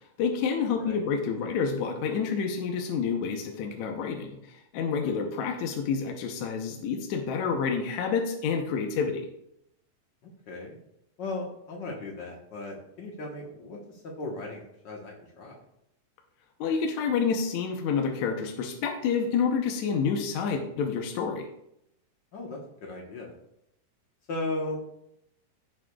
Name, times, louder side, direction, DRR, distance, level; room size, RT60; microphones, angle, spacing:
voice 1, 0.2-9.3 16.6-21.5, left 6 dB, 70° left, 3 dB, 1.8 m, -28 dB
voice 2, 10.5-10.8 11.2-15.6 22.3-23.3 24.3-24.8, left 2 dB, 85° left, -1 dB, 0.9 m, -37 dB
15.5 x 6.2 x 2.3 m, 0.79 s
omnidirectional pair, 4.0 m